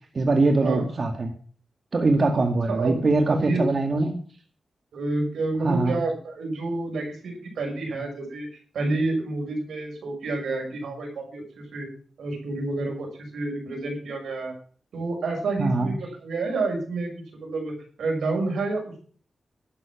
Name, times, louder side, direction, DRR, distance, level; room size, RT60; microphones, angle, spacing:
voice 1, 0.1-1.3 1.9-4.2 5.6-6.0 15.6-15.9, right 2 dB, 45° right, 4 dB, 1.8 m, -22 dB
voice 2, 2.7-3.6 4.9-8.5 8.7-11.9 12.2-14.5 14.9-19.0, right 3 dB, 90° right, 2 dB, 5.8 m, -29 dB
12.0 x 10.0 x 5.8 m, 0.43 s
cardioid pair, 85°, 0 cm